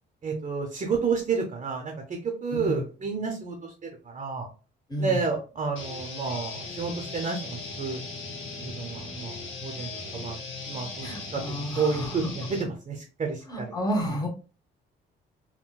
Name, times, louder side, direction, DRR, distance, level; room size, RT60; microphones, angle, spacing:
voice 1, 0.2-4.5 5.0-8.0 8.6-10.4 10.7-11.1 11.3-13.7 14.0-14.1, right 5 dB, 35° right, 2 dB, 0.7 m, -30 dB
voice 2, 2.5-2.8 4.9-5.2 11.0-12.3 13.5-14.3, equal, 20° left, 0 dB, 1.1 m, -31 dB
sound 1, 5.8-12.6, left 3 dB, 80° left, 1.1 m, -38 dB
3.8 x 2.2 x 2.3 m, 0.35 s
cardioid pair, 90°, 20 cm